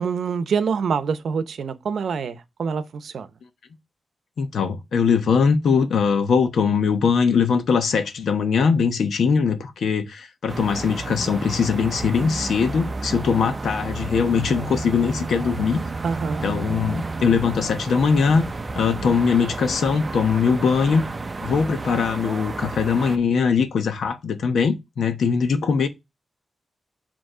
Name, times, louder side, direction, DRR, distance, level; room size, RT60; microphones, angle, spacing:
voice 1, 0.0-3.3 16.0-16.4, right 6 dB, 75° right, 0.7 m, -26 dB
voice 2, 4.4-15.8 16.4-18.4 18.7-21.1 21.4-25.9, left 6 dB, 80° left, 1.0 m, -21 dB
sound 1, 10.5-23.2, right 3 dB, 30° right, 0.5 m, -31 dB
8.0 x 3.0 x 4.9 m
wide cardioid pair, 120°, 0 cm